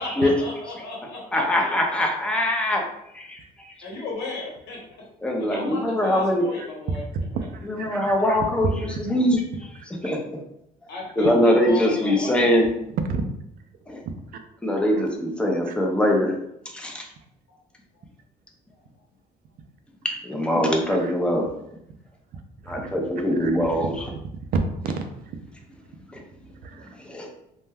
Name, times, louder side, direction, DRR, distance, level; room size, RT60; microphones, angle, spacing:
voice 1, 0.0-1.4 3.8-4.8 5.4-7.0 10.9-12.3, left 3 dB, 80° left, -2 dB, 1.0 m, -34 dB
voice 2, 1.3-2.8 3.1-3.7 5.2-6.4 7.7-9.4 10.0-10.2 11.2-12.7 13.9-14.0 14.6-16.3 16.7-17.0 20.2-21.4 22.7-23.9 26.1-26.2 27.0-27.3, left 1 dB, 5° left, 0 dB, 0.5 m, -22 dB
voice 3, 7.1-8.4 8.8-9.1 12.9-13.2 15.7-15.8 20.9-21.1 22.3-22.9 23.4-23.7 24.5-25.4 26.5-26.9, right 4 dB, 60° right, 6 dB, 0.4 m, -31 dB
2.2 x 2.1 x 3.3 m, 0.78 s
cardioid pair, 110°, 17 cm